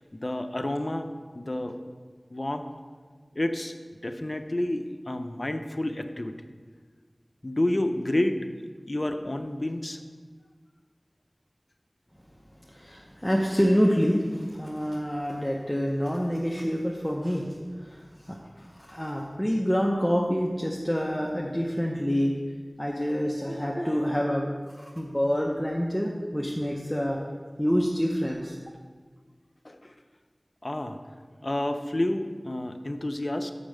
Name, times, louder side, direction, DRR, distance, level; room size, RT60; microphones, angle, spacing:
voice 1, 0.1-1.8 2.3-2.7 3.3-3.8 4.0-6.3 7.4-10.0 29.6-29.9 30.6-31.0 31.4-33.5, left 1 dB, 45° left, 7 dB, 0.6 m, -30 dB
voice 2, 12.7-17.5 17.8-22.4 22.8-27.2 27.6-28.6, equal, 10° left, -2 dB, 0.8 m, -27 dB
6.9 x 6.4 x 6.3 m, 1.5 s
wide cardioid pair, 45°, 0 cm